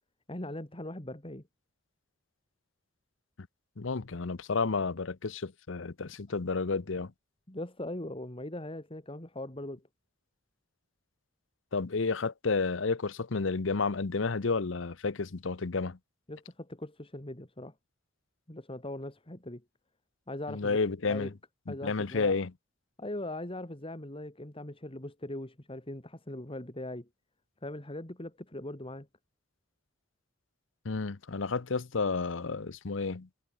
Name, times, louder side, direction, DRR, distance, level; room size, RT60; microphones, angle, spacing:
voice 1, 0.3-1.4 7.5-9.8 16.3-17.7 18.5-19.6 20.3-21.3 21.7-22.4 23.0-27.1 27.6-29.1, left 1 dB, 25° left, 2.7 m, -40 dB
voice 2, 3.8-7.1 11.7-16.0 20.5-21.3 21.8-22.5 30.8-33.3, left 4 dB, 70° left, 0.8 m, -31 dB
head